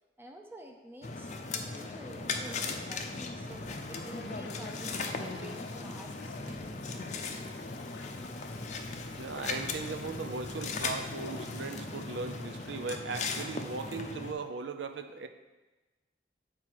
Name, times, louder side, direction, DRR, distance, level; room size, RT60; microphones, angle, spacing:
voice 1, 0.2-6.3, right 1 dB, 10° right, 2 dB, 0.6 m, -49 dB
sound 1, 1.0-14.3, left 3 dB, 40° left, 0.5 m, -38 dB
Toilet flush, 2.0-13.8, left 4 dB, 85° left, 0.6 m, -51 dB
sound 2, 3.5-5.0 5.7-12.8, right 1 dB, 45° right, 1.0 m, -54 dB
voice 2, 9.2-15.3, right 4 dB, 90° right, 8 dB, 0.5 m, -38 dB
7.6 x 4.3 x 4.7 m, 1.2 s
head